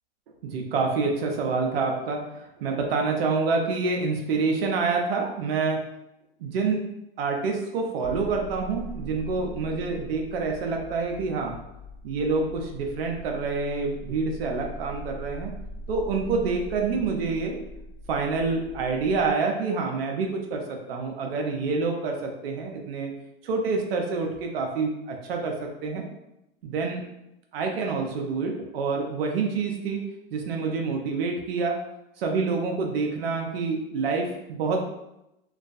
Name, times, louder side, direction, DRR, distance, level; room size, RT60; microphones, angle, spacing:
voice 1, 0.4-5.8 6.4-6.8 7.2-11.6 12.0-15.5 15.9-17.6 18.1-23.1 23.4-26.1 26.6-27.0 27.5-30.0 30.3-31.8 32.2-34.8, right 4 dB, 75° right, 2 dB, 0.5 m, -27 dB
sound 1, 8.0-19.3, equal, 45° left, 0.8 m, -41 dB
2.3 x 2.2 x 2.6 m, 0.87 s
hypercardioid pair, 105°, 30 cm